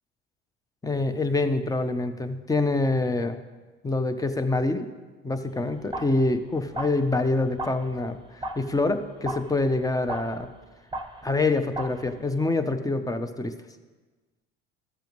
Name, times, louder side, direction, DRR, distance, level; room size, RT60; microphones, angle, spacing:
voice 1, 0.8-3.4 3.8-4.9 5.2-10.5 11.2-13.5, left 2 dB, 10° left, 8 dB, 0.8 m, -26 dB
sound 1, 5.5-12.5, right 1 dB, 15° right, 1.0 m, -38 dB
13.5 x 6.8 x 3.1 m, 1.3 s
hypercardioid pair, 70°, 32 cm